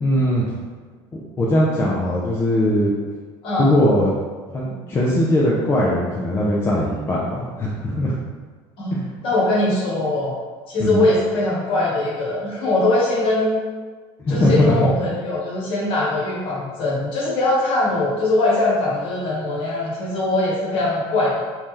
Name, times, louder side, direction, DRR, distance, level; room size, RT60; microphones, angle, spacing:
voice 1, 0.0-0.5 1.4-2.9 3.6-4.1 4.5-8.1 8.9-9.0 10.8-11.0 14.2-14.9, left 1 dB, 20° left, -5 dB, 0.4 m, -20 dB
voice 2, 9.2-10.3 10.7-13.6 14.3-21.4, left 2 dB, 50° left, -5 dB, 1.2 m, -21 dB
3.1 x 2.7 x 3.7 m, 1.4 s
cardioid pair, 150°, 12 cm